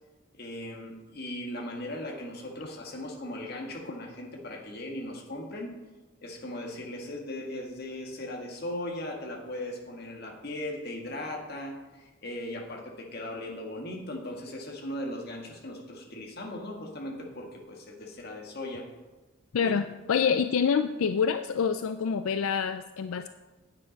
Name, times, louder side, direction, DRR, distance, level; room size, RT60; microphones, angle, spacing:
voice 1, 0.3-5.7 6.2-18.9 19.6-19.7, left 1 dB, 45° left, 1 dB, 1.8 m, -38 dB
voice 2, 19.5-23.3, left 6 dB, 80° left, 10 dB, 0.4 m, -26 dB
9.7 x 8.0 x 5.2 m, 1.2 s
head